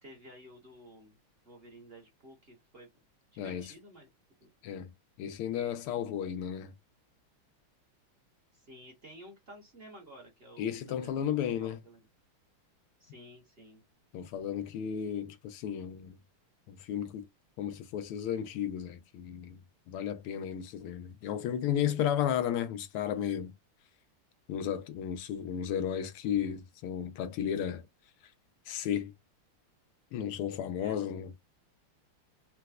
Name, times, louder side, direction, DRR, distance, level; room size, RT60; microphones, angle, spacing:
voice 1, 0.0-1.2 1.4-2.9 3.3-4.1 4.4-4.5 8.5-11.3 11.6-12.0 13.0-13.8 30.8-31.1, right 1 dB, 45° right, 0.8 m, -52 dB
voice 2, 3.4-3.7 4.6-4.9 5.2-6.7 10.6-11.8 14.1-16.1 16.7-17.3 17.6-19.6 19.9-23.5 24.5-27.9 28.7-29.1 30.1-31.3, left 9 dB, 90° left, 1.6 m, -33 dB
4.4 x 2.0 x 2.3 m
omnidirectional pair, 2.4 m